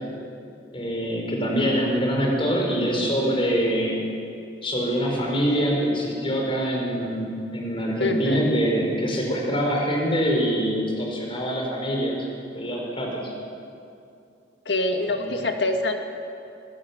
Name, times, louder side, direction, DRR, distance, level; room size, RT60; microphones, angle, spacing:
voice 1, 0.7-4.1 4.6-12.2 12.5-13.3 15.1-15.3, equal, 30° left, 0 dB, 4.8 m, -24 dB
voice 2, 8.0-8.4 14.7-16.0, left 2 dB, 70° left, 4 dB, 2.1 m, -25 dB
23.5 x 17.0 x 7.4 m, 2.6 s
head